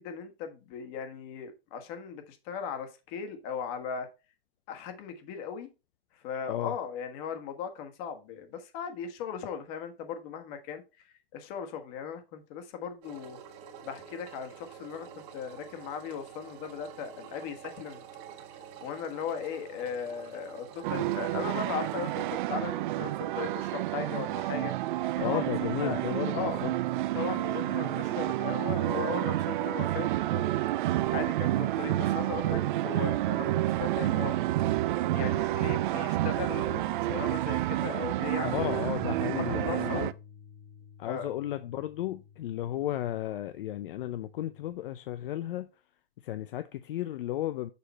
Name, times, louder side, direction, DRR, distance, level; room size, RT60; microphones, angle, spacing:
voice 1, 0.0-4.1 4.7-5.7 6.2-10.8 11.3-13.4 13.8-18.0 18.8-24.7 25.2-26.0 26.3-26.6 27.1-30.5 30.8-34.4 35.1-38.8 39.4-40.1 41.0-41.3, left 7 dB, 40° left, 1.5 m, -38 dB
Engine, 13.0-22.4, right 8 dB, 40° right, 1.5 m, -48 dB
sound 1, 20.8-40.1, right 15 dB, 60° right, 0.5 m, -29 dB
voice 2, 25.2-26.7 38.4-40.1 41.0-45.7 46.2-47.7, left 13 dB, 65° left, 0.6 m, -34 dB
Bass guitar, 38.5-44.7, left 7 dB, 20° left, 0.8 m, -49 dB
6.9 x 5.0 x 4.2 m
hypercardioid pair, 145°, 29 cm